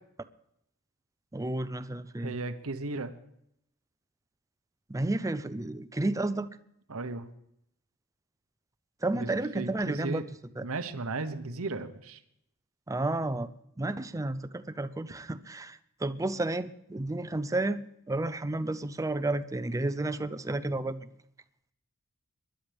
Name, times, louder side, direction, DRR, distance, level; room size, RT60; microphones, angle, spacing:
voice 1, 1.3-2.4 4.9-6.5 9.0-10.2 10.6-10.7 12.9-13.5 13.8-21.1, right 2 dB, 15° right, 13 dB, 0.5 m, -31 dB
voice 2, 2.2-3.1 6.9-7.3 9.1-10.2 10.6-12.2, right 3 dB, 65° right, 9 dB, 1.0 m, -35 dB
25.0 x 11.5 x 3.5 m, 0.76 s
head